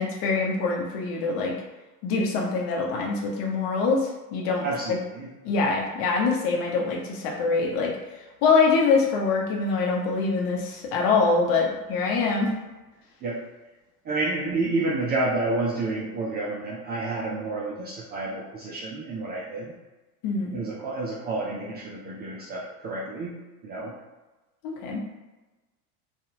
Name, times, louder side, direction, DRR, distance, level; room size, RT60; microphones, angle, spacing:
voice 1, 0.0-1.5 2.0-5.0 5.4-8.0 8.4-12.5 20.2-20.6 24.6-25.0, left 4 dB, 50° left, -1 dB, 0.8 m, -24 dB
voice 2, 4.6-5.3 13.2-13.5 14.0-19.7 20.5-23.9, right 2 dB, 25° right, -5 dB, 0.3 m, -30 dB
2.7 x 2.4 x 2.7 m, 1.1 s
hypercardioid pair, 90°, 46 cm